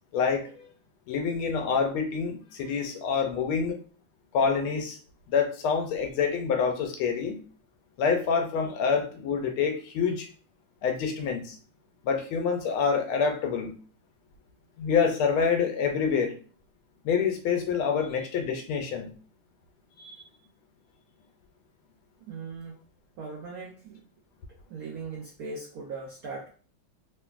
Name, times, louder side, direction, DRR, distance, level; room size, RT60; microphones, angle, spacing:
voice 1, 0.1-0.7 1.1-3.8 4.3-5.0 5.3-7.4 8.0-10.3 10.8-11.6 12.0-13.7 14.8-16.3 17.0-19.1 20.0-20.2, left 6 dB, 80° left, 4 dB, 1.4 m, -27 dB
voice 2, 22.3-22.8 23.2-24.0 24.7-26.5, right 4 dB, 85° right, -2 dB, 0.8 m, -39 dB
3.3 x 2.5 x 2.3 m, 0.40 s
omnidirectional pair, 2.3 m